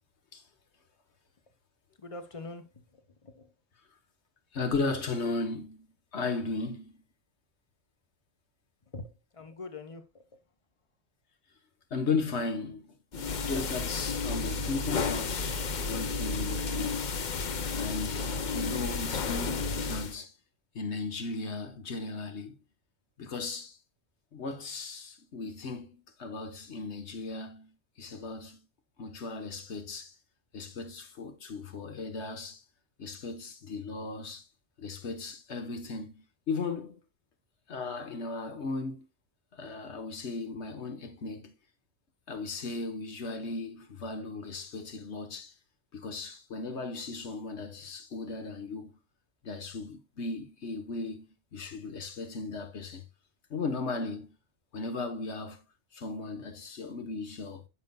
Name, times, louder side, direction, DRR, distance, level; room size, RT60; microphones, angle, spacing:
voice 1, 2.0-3.5 8.8-10.4, left 3 dB, 30° left, 1.2 m, -45 dB
voice 2, 4.5-5.9 6.1-7.0 11.9-17.0 17.8-20.3 20.7-22.6 23.2-23.8 24.3-28.6 29.0-30.1 30.5-32.6 33.0-34.4 34.8-37.0 37.7-39.1 39.5-41.5 42.3-45.5 45.9-48.9 49.4-51.3 51.5-53.0 53.5-54.4 54.7-55.6 55.9-57.6, left 3 dB, 90° left, 1.5 m, -36 dB
sound 1, 13.1-20.1, left 4 dB, 50° left, 0.8 m, -32 dB
9.4 x 6.5 x 2.3 m
omnidirectional pair, 1.1 m